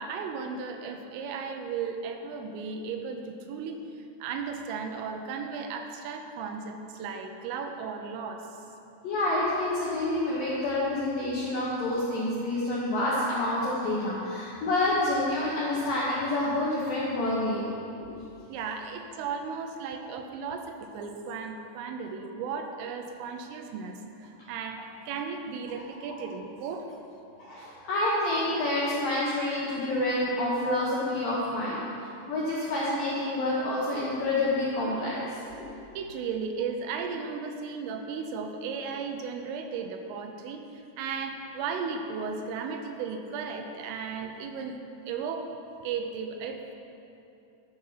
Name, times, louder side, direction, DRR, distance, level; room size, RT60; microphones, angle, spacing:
voice 1, 0.0-8.5 13.5-14.0 18.5-26.9 35.9-44.7 45.1-45.5 45.8-46.8, right 5 dB, 85° right, 5 dB, 3.3 m, -35 dB
voice 2, 9.0-17.7 18.0-18.2 26.1-26.2 27.4-35.2 35.5-35.7, left 1 dB, 75° left, -7 dB, 2.1 m, -28 dB
12.0 x 6.8 x 5.7 m, 2.7 s
omnidirectional pair, 5.9 m